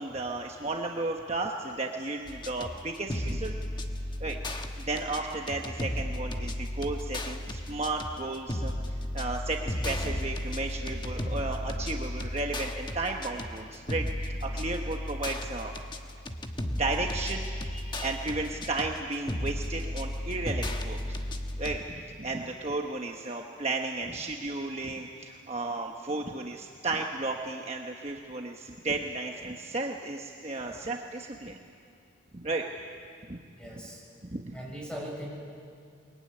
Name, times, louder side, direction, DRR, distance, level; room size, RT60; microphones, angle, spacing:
voice 1, 0.0-3.5 4.2-4.4 4.8-15.7 16.8-17.5 18.0-21.2 21.6-31.6 32.3-32.7 33.3-33.4 34.2-34.5, right 2 dB, 30° right, 1 dB, 1.1 m, -34 dB
sound 1, 2.3-21.8, left 1 dB, 20° left, 1.2 m, -34 dB
voice 2, 17.7-18.2 33.6-34.0 34.5-35.3, equal, 5° left, -2 dB, 6.1 m, -40 dB
22.5 x 21.5 x 9.8 m, 2.3 s
head